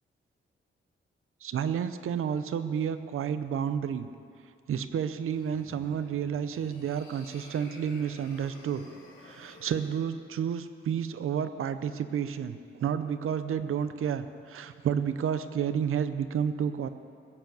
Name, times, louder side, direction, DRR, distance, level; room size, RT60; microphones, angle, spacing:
voice 1, 1.4-4.1 4.7-8.8 9.2-16.9, right 8 dB, 85° right, 12 dB, 0.7 m, -31 dB
sound 1, 5.2-10.0, left 2 dB, 80° left, 3.2 m, -52 dB
16.5 x 7.2 x 7.8 m, 2.4 s
wide cardioid pair, 165°, 21 cm